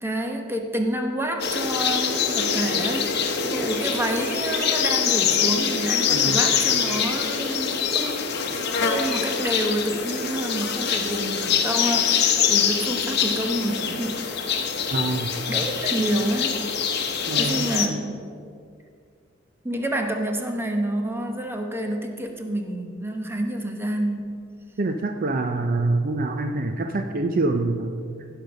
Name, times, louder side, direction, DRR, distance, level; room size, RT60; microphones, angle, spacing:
voice 1, 0.0-8.3 8.8-14.3 15.5-16.6 17.3-18.1 19.6-24.3, right 1 dB, 10° right, 3 dB, 1.0 m, -28 dB
sound 1, 1.4-17.9, left 7 dB, 55° left, 1.0 m, -24 dB
voice 2, 6.1-6.4 14.9-15.4 17.3-18.0 24.8-28.0, right 2 dB, 45° right, 6 dB, 0.5 m, -26 dB
15.5 x 5.3 x 6.4 m, 2.3 s
head